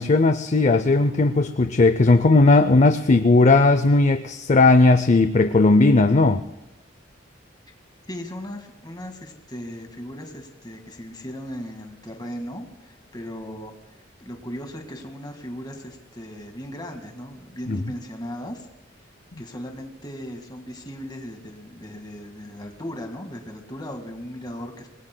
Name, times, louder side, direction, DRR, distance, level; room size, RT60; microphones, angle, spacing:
voice 1, 0.0-6.4 17.7-17.8, left 3 dB, 40° left, 10 dB, 0.5 m, -17 dB
voice 2, 8.1-13.7 14.2-18.7 19.4-24.9, equal, 20° left, 4 dB, 1.9 m, -37 dB
26.5 x 21.0 x 2.2 m, 0.97 s
head